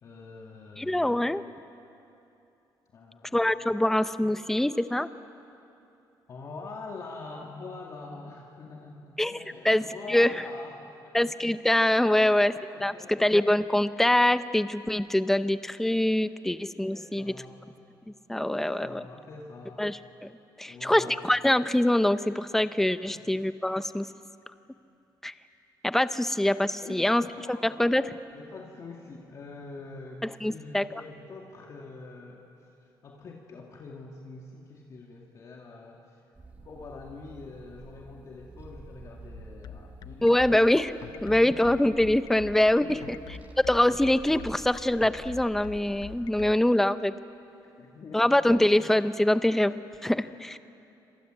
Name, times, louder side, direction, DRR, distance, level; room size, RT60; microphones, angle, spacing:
voice 1, 0.0-1.3 2.9-3.5 6.3-11.3 12.2-13.3 16.9-17.6 18.4-19.9 20.6-21.2 23.0-23.2 26.8-27.6 28.3-36.2 36.6-40.4 41.1-41.8 42.8-43.2 43.8-44.0 47.8-48.4 50.2-50.3, left 3 dB, 45° left, -1 dB, 2.5 m, -45 dB
voice 2, 0.8-1.4 3.3-5.1 9.2-9.4 9.6-10.3 11.1-12.5 12.8-17.3 18.3-19.0 19.8-20.3 20.6-24.1 25.2-25.3 25.8-27.2 27.5-28.1 30.2-30.8 40.2-40.9 41.2-43.0 43.7-47.1 48.1-50.6, left 1 dB, 5° left, 12 dB, 0.7 m, -24 dB
sound 1, 36.3-46.5, right 3 dB, 20° right, 2.0 m, -49 dB
sound 2, 39.3-46.5, left 9 dB, 60° left, 0.7 m, -44 dB
28.5 x 26.0 x 8.0 m, 2.8 s
cardioid pair, 145°, 8 cm